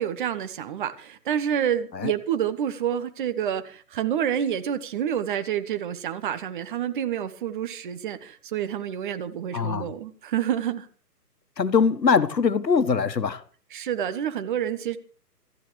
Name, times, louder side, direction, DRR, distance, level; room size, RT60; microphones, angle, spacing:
voice 1, 0.0-10.9 13.7-15.0, right 9 dB, 30° right, 1.2 m, -28 dB
voice 2, 9.5-9.9 11.6-13.4, left 6 dB, 85° left, 1.5 m, -22 dB
26.5 x 14.0 x 3.3 m
figure-of-eight pair, 140°, 49 cm